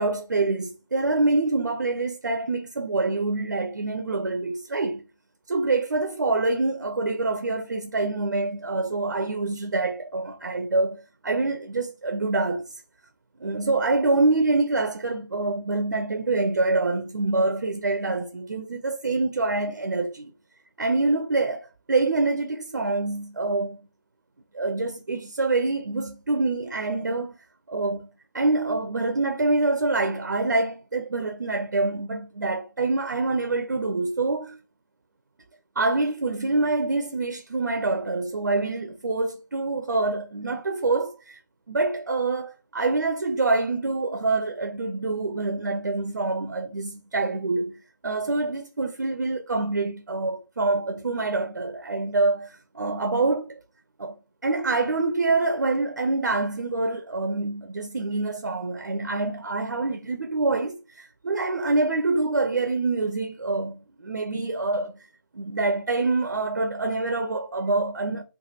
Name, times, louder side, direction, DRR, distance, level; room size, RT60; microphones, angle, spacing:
voice 1, 0.0-5.0 5.5-12.7 13.4-20.3 20.8-23.8 24.5-27.4 27.7-34.6 35.8-41.4 41.7-53.6 54.0-54.2 54.4-65.0 65.3-68.2, right 3 dB, 65° right, 0.4 m, -26 dB
3.2 x 2.2 x 2.7 m
figure-of-eight pair, 155°, 11 cm